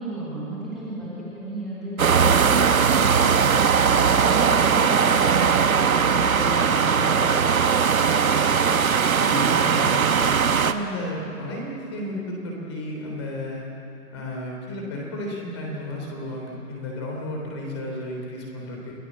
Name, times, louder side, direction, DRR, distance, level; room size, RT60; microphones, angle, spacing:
voice 1, 0.0-3.4 3.9-7.1, right 2 dB, ahead, -12 dB, 1.3 m, -33 dB
sound 1, 2.0-10.7, right 6 dB, 60° right, 1.2 m, -19 dB
voice 2, 9.2-10.0 10.5-13.6 14.1-18.9, left 1 dB, 15° left, -1 dB, 3.4 m, -33 dB
29.5 x 19.5 x 7.4 m, 2.8 s
hypercardioid pair, 175°, 47 cm